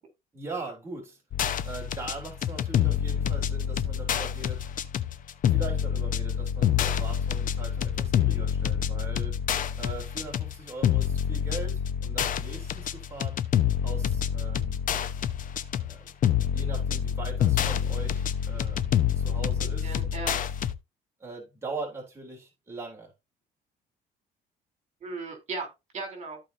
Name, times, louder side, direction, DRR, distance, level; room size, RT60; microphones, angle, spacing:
voice 1, 0.3-1.2 1.6-4.6 5.5-9.4 9.8-13.5 13.8-14.7 15.7-16.1 16.5-18.9 19.1-19.9 21.2-23.1, right 3 dB, 15° right, 3.5 m, -41 dB
sound 1, 1.3-20.7, left 9 dB, 50° left, 0.9 m, -27 dB
voice 2, 19.6-20.5 25.0-26.4, right 3 dB, 45° right, 3.9 m, -37 dB
14.0 x 4.7 x 2.9 m
cardioid pair, 110°, 17 cm